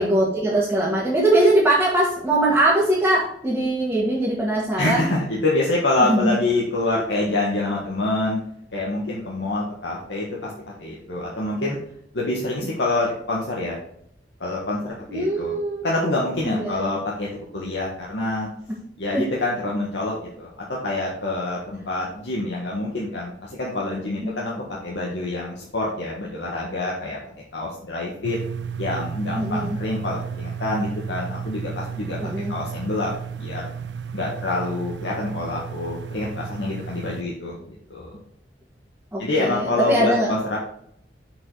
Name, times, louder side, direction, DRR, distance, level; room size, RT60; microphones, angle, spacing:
voice 1, 0.0-5.1 6.0-6.4 15.1-15.9 16.4-17.0 19.1-19.2 24.2-24.4 29.3-29.8 32.2-32.5 39.1-40.3, right 1 dB, 10° right, -8 dB, 1.9 m, -21 dB
voice 2, 4.8-8.4 8.7-10.5 10.8-11.8 12.1-13.8 14.4-15.6 15.8-18.5 19.0-24.5 24.8-27.2 27.5-28.4 28.8-32.2 32.5-33.1 33.4-33.6 34.1-38.2 39.2-40.6, left 2 dB, 80° left, -4 dB, 1.5 m, -26 dB
sound 1, 28.2-37.2, right 6 dB, 80° right, 0.5 m, -33 dB
7.1 x 5.3 x 4.0 m, 0.71 s
head